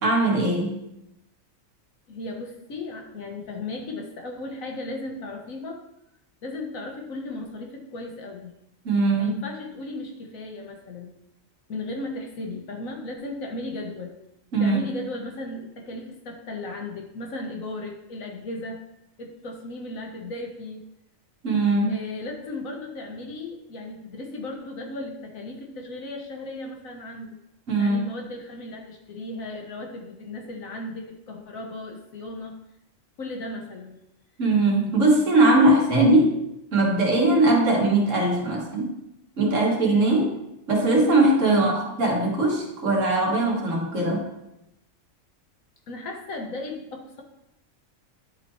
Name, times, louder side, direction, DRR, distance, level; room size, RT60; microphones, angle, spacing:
voice 1, 0.0-0.8 8.9-9.4 14.5-14.9 21.4-22.0 27.7-28.0 34.4-36.4 36.7-39.0 39.4-40.4 40.7-44.3, right 2 dB, 70° right, -1 dB, 1.8 m, -20 dB
voice 2, 2.1-5.8 6.4-8.6 9.2-11.1 11.7-14.2 14.6-18.8 19.2-20.8 21.9-27.4 27.8-32.5 33.2-34.0 41.5-41.8 45.9-47.2, left 2 dB, 85° left, 2 dB, 1.5 m, -36 dB
10.5 x 4.2 x 3.1 m, 0.86 s
omnidirectional pair, 1.4 m